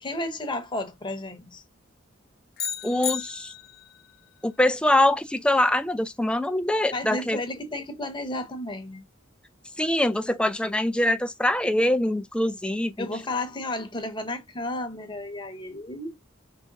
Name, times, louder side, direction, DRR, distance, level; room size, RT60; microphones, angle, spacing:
voice 1, 0.0-1.6 6.9-9.0 13.0-16.1, left 2 dB, 25° left, 0.9 m, -32 dB
sound 1, 2.6-4.0, left 8 dB, 50° left, 0.6 m, -33 dB
voice 2, 2.8-3.5 4.4-7.4 9.8-13.1, left 1 dB, 5° left, 0.4 m, -23 dB
5.8 x 3.4 x 2.6 m
head